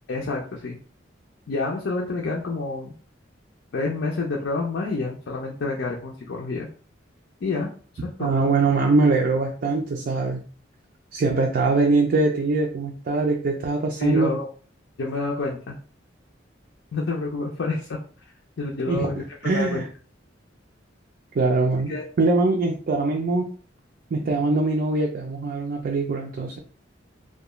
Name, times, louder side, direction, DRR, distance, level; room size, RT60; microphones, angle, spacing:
voice 1, 0.1-0.8 1.5-2.9 3.7-6.7 7.4-7.7 8.2-8.3 14.0-14.5 15.0-15.8 16.9-18.0 18.6-19.8 21.9-22.0, left 3 dB, 65° left, -2 dB, 0.5 m, -28 dB
voice 2, 8.2-10.4 11.1-14.3 18.9-19.1 19.4-19.9 21.3-23.5 24.1-26.6, right 3 dB, 50° right, 1 dB, 0.4 m, -22 dB
2.3 x 2.3 x 2.9 m, 0.41 s
head